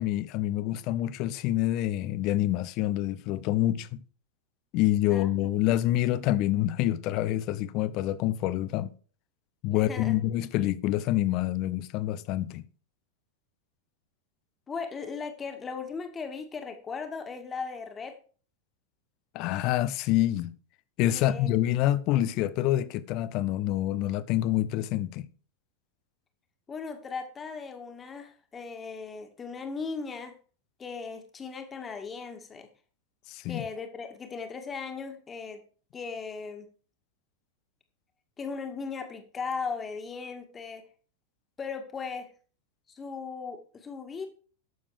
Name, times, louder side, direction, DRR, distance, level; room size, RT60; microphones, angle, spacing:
voice 1, 0.0-4.0 4.7-8.9 9.6-12.6 19.3-20.5 21.0-25.3 33.3-33.6, left 14 dB, 40° left, 0.8 m, -27 dB
voice 2, 9.7-10.2 14.7-18.2 21.1-21.5 26.7-30.4 30.8-32.7 33.5-35.6 35.9-36.7 38.4-40.8 41.6-42.3 42.9-44.3, left 5 dB, 20° left, 2.0 m, -37 dB
12.5 x 7.2 x 4.9 m
figure-of-eight pair, 90°, 0 cm